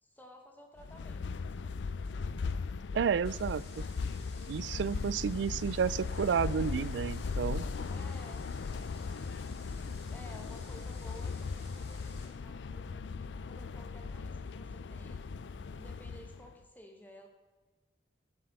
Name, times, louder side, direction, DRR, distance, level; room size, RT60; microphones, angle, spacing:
voice 1, 0.0-1.8 7.9-8.5 10.0-15.2 15.7-17.3, left 1 dB, 10° left, 2 dB, 1.3 m, -54 dB
sound 1, 0.8-16.5, left 4 dB, 90° left, 0.4 m, -38 dB
voice 2, 2.9-3.6 4.5-7.6, right 7 dB, 85° right, 21 dB, 0.3 m, -31 dB
sound 2, 3.2-12.3, left 3 dB, 65° left, 2.9 m, -56 dB
11.0 x 7.6 x 6.7 m, 1.3 s
head